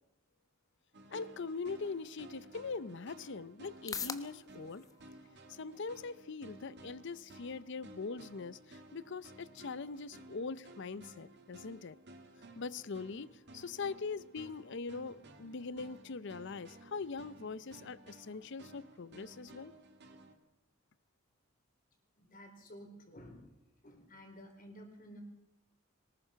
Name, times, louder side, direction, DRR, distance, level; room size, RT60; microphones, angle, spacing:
sound 1, 0.9-20.3, right 2 dB, 55° right, 2.5 m, -56 dB
voice 1, 1.1-5.1 5.5-12.0 12.6-19.7, left 4 dB, 60° left, 0.6 m, -42 dB
sound 2, 2.4-19.4, left 5 dB, 15° left, 1.1 m, -53 dB
voice 2, 22.2-23.5 23.8-25.2, equal, 45° left, 4.3 m, -53 dB
23.0 x 20.0 x 5.9 m
head